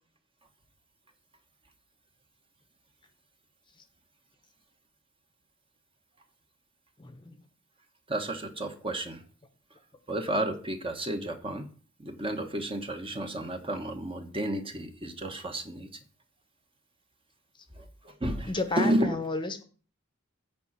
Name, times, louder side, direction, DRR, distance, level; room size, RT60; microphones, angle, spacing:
voice 1, 7.0-7.4 18.5-19.6, left 2 dB, 20° left, 8 dB, 0.9 m, -32 dB
voice 2, 8.1-9.2 10.1-11.7 12.0-15.9 17.8-19.1, right 1 dB, 25° right, 5 dB, 1.2 m, -32 dB
9.2 x 5.1 x 7.3 m, 0.40 s
head